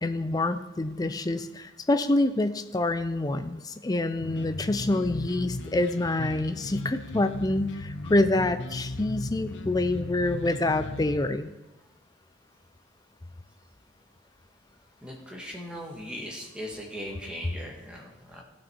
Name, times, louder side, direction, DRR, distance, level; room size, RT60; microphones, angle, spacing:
voice 1, 0.0-11.5, left 2 dB, 20° left, 10 dB, 0.4 m, -27 dB
sound 1, 4.2-11.2, left 2 dB, 60° left, 0.6 m, -37 dB
voice 2, 15.0-18.4, equal, 5° right, -2 dB, 1.5 m, -39 dB
15.0 x 6.3 x 4.5 m, 1.0 s
head